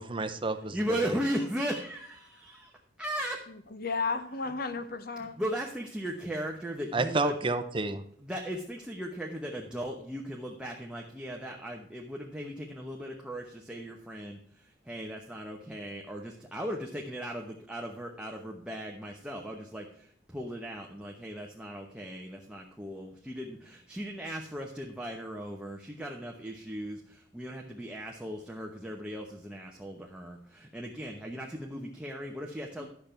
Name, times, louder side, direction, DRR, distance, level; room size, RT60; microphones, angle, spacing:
voice 1, 0.0-0.8 1.0-1.2 6.9-8.0, right 3 dB, 30° right, 10 dB, 0.7 m, -30 dB
voice 2, 0.7-2.7 3.0-3.4 5.2-7.3 8.2-32.9, equal, 5° right, -1 dB, 1.0 m, -37 dB
voice 3, 3.5-5.4 32.8-32.9, left 4 dB, 55° left, 10 dB, 1.0 m, -34 dB
11.0 x 6.9 x 4.4 m, 0.63 s
head